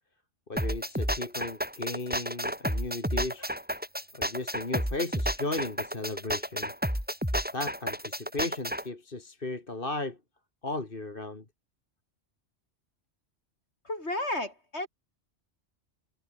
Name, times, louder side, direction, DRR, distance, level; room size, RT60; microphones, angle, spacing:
voice 1, 0.5-3.5 4.1-6.7 7.5-10.2 10.6-11.4, left 2 dB, 50° left, 2.8 m, -35 dB
sound 1, 0.6-8.8, equal, 10° right, 7.2 m, -31 dB
voice 2, 13.8-14.9, left 1 dB, 65° left, 7.3 m, -32 dB
omnidirectional pair, 1.2 m